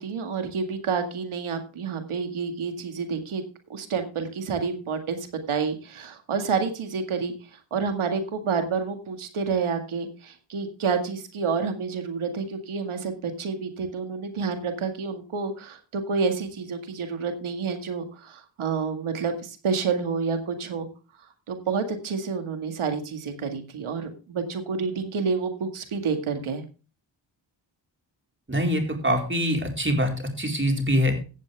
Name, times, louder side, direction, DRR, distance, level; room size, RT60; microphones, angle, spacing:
voice 1, 0.0-3.4 3.7-20.9 21.5-26.6, right 5 dB, 85° right, 7 dB, 2.1 m, -29 dB
voice 2, 28.5-30.1 30.4-31.1, equal, 25° right, 3 dB, 4.3 m, -24 dB
16.0 x 7.5 x 3.5 m, 0.33 s
cardioid pair, 55°, 48 cm